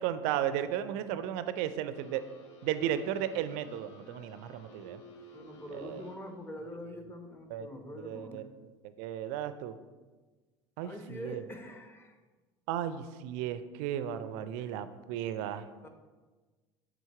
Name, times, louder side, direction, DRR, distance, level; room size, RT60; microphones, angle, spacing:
voice 1, 0.0-2.2 2.6-5.0 5.7-6.0 7.5-7.7 8.0-8.4 9.0-9.8 10.8-11.4 12.7-15.6, right 10 dB, 60° right, 12 dB, 0.4 m, -34 dB
sound 1, 1.9-6.5, equal, 75° left, 0.8 m, -53 dB
voice 2, 5.3-8.4 10.8-12.2 14.6-14.7 15.8-15.9, left 1 dB, 15° left, 4 dB, 0.9 m, -44 dB
7.0 x 3.9 x 4.5 m, 1.3 s
figure-of-eight pair, 70°, 15 cm